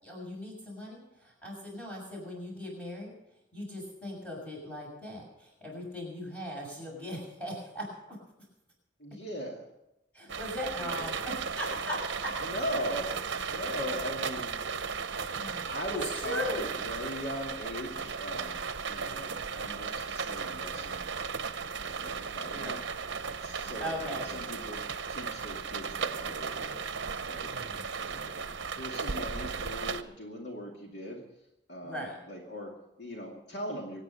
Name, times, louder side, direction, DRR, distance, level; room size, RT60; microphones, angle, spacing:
voice 1, 0.0-3.2 3.5-8.2 10.1-12.0 12.2-12.3 15.1-16.7 22.5-22.8 23.8-24.3 27.5-27.9 31.8-32.2, left 1 dB, 5° left, -3 dB, 6.8 m, -39 dB
voice 2, 9.0-9.6 10.8-11.1 12.4-13.1 13.5-14.6 15.2-15.4 15.7-18.6 18.8-21.1 21.8-22.8 23.4-26.9 27.3-27.6 28.0-28.4 28.7-31.2 31.7-34.0, equal, 55° left, 0 dB, 2.4 m, -40 dB
sound 1, 10.3-30.0, right 5 dB, 65° right, 0.8 m, -36 dB
24.5 x 9.3 x 5.7 m, 0.87 s
head